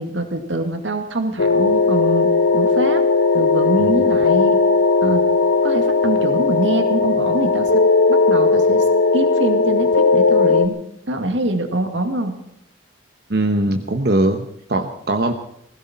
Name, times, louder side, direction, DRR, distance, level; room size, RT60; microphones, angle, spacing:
voice 1, 0.0-3.0 3.3-4.6 5.0-5.3 5.6-8.9 9.1-10.8 11.1-12.4, right 1 dB, 80° right, 5 dB, 2.2 m, -24 dB
sound 1, 1.4-10.7, left 4 dB, 85° left, 1.0 m, -17 dB
voice 2, 13.3-15.3, right 1 dB, 55° right, 5 dB, 1.1 m, -21 dB
20.0 x 16.5 x 4.4 m, 0.75 s
head